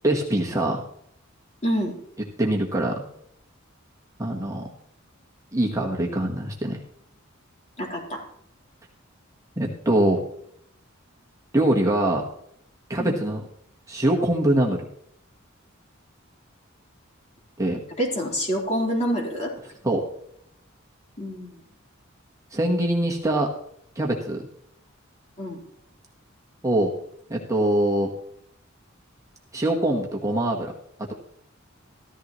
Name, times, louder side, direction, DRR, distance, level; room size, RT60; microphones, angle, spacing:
voice 1, 0.0-0.8 2.4-2.9 4.2-4.6 5.5-6.8 9.6-10.2 11.5-12.2 12.9-13.4 13.9-14.8 17.6-17.8 19.8-20.0 22.5-23.5 23.9-24.4 26.6-26.9 27.3-28.1 29.5-30.7, right 1 dB, 15° right, -1 dB, 1.4 m, -23 dB
voice 2, 1.6-1.9 7.8-8.2 13.0-13.2 18.0-19.5 21.2-21.5 25.4-25.6, equal, 35° left, -2 dB, 3.8 m, -26 dB
14.5 x 14.0 x 3.1 m, 0.71 s
head